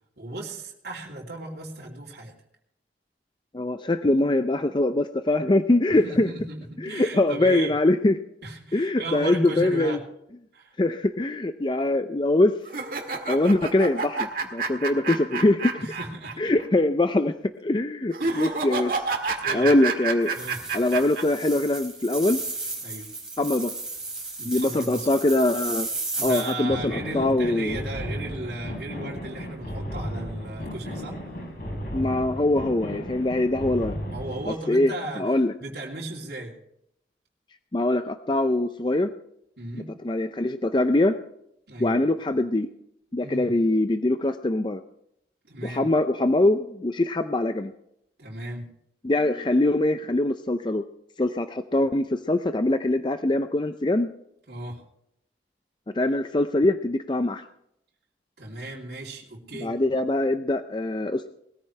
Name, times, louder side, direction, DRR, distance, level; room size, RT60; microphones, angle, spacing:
voice 1, 0.2-2.3 5.9-7.7 8.4-10.0 10.5-10.7 15.8-16.4 18.2-18.5 19.4-19.8 20.3-20.6 22.8-23.1 24.4-25.1 26.2-31.2 34.1-35.2 35.6-36.5 39.6-39.9 41.7-41.9 43.2-43.5 45.4-45.9 48.2-48.7 54.5-54.8 58.4-59.8, right 2 dB, 70° right, -4 dB, 3.0 m, -36 dB
voice 2, 3.5-6.3 6.8-8.2 8.7-10.0 10.8-12.5 13.3-15.7 16.4-17.3 17.6-19.0 19.5-20.4 20.7-22.4 23.4-23.7 24.5-25.9 26.2-27.8 31.9-34.0 34.5-35.5 37.7-39.1 40.0-41.2 41.8-42.7 43.1-44.8 45.6-47.7 49.0-50.8 51.2-54.1 55.9-57.4 59.6-61.3, left 2 dB, 25° left, 9 dB, 0.5 m, -23 dB
sound 1, 12.7-16.3 16.6-16.7 18.1-21.2, right 4 dB, 50° right, 1.8 m, -29 dB
sound 2, 20.2-26.5, right 3 dB, 5° right, 4.9 m, -34 dB
sound 3, 26.7-34.5, equal, 50° left, 4.2 m, -35 dB
20.0 x 14.5 x 3.3 m, 0.75 s
head